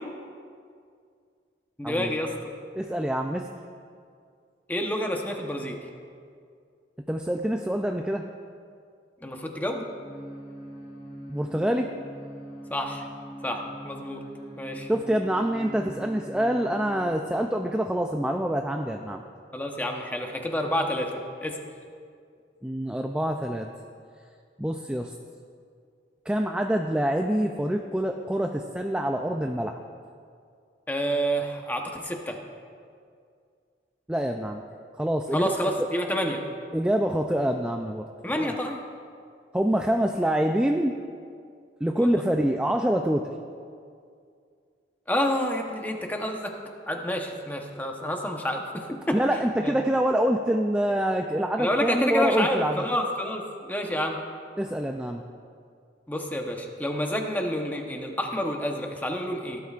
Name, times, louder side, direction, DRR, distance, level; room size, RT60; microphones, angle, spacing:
voice 1, 1.8-2.5 4.7-5.8 9.2-9.9 12.7-13.1 13.4-14.2 14.6-14.9 19.5-21.6 30.9-32.4 35.3-36.4 38.2-38.8 41.9-42.2 45.1-46.5 46.9-49.2 49.6-49.7 51.6-54.2 56.1-59.6, equal, 10° left, 2 dB, 0.9 m, -29 dB
voice 2, 2.7-3.5 7.1-8.2 11.3-11.9 14.9-19.2 22.6-23.7 24.6-25.1 26.3-29.8 34.1-34.6 35.0-35.5 36.7-38.0 38.3-38.5 39.5-41.0 41.8-43.3 49.1-52.8 54.6-55.2, right 1 dB, 5° right, 3 dB, 0.4 m, -26 dB
sound 1, 10.0-17.1, right 1 dB, 50° left, 3.1 m, -42 dB
17.0 x 11.5 x 2.5 m, 2.3 s
head